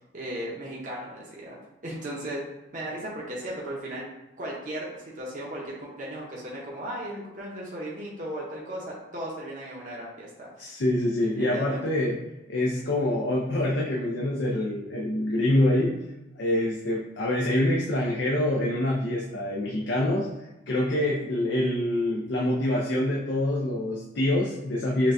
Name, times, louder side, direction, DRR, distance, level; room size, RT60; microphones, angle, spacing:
voice 1, 0.1-1.6 1.8-2.4 2.7-4.0 4.4-10.7 11.4-11.8, right 1 dB, 45° right, -4 dB, 0.7 m, -36 dB
voice 2, 10.6-12.2 12.5-15.9 16.4-20.3 20.7-25.1, left 1 dB, 80° left, -4 dB, 0.6 m, -25 dB
5.8 x 2.2 x 2.6 m, 0.98 s
head